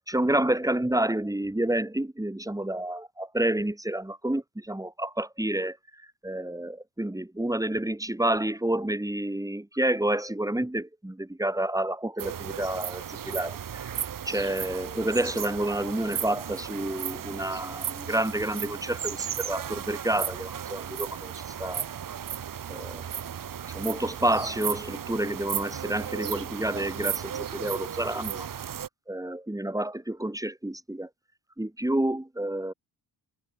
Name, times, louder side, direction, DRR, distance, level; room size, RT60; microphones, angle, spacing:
voice 1, 0.1-5.8 6.2-13.9 14.3-21.9 22.7-23.1 23.7-28.5 29.1-31.1 31.6-32.7, right 1 dB, 10° right, 2.0 m, -29 dB
sound 1, 12.2-28.9, right 9 dB, 50° right, 0.8 m, -35 dB
cardioid pair, 70°, 43 cm